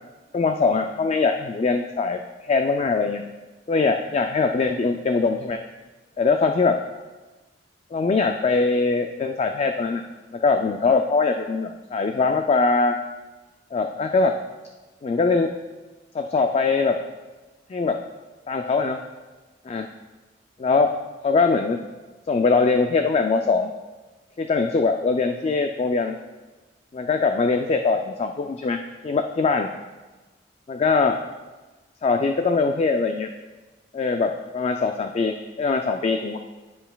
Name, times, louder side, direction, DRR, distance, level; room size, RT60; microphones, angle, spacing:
voice 1, 0.3-3.2 3.7-5.6 6.2-6.8 7.9-10.0 10.3-13.0 13.7-14.4 15.0-15.5 16.1-17.0 17.7-18.0 18.5-19.0 19.7-19.9 20.6-20.9 21.2-21.8 22.3-23.7 24.4-26.2 26.9-28.8 29.0-29.7 30.7-31.2 32.0-33.3 33.9-36.4, left 4 dB, 35° left, 5 dB, 0.3 m, -22 dB
11.5 x 5.6 x 2.3 m, 1.2 s
head